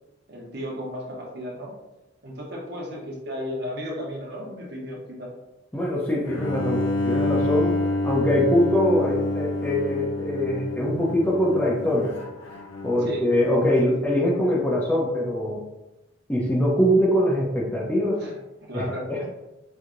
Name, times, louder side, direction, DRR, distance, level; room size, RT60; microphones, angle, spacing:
voice 1, 0.3-1.7 2.2-5.3 13.0-13.2 18.2-19.3, equal, 55° right, -2 dB, 0.9 m, -34 dB
voice 2, 5.7-7.8 8.0-12.2 12.8-15.6 16.3-18.2 18.7-19.3, left 1 dB, 10° left, -4 dB, 0.5 m, -23 dB
Bowed string instrument, 6.2-13.3, left 2 dB, 70° left, 0.7 m, -28 dB
4.5 x 2.7 x 2.4 m, 0.99 s
head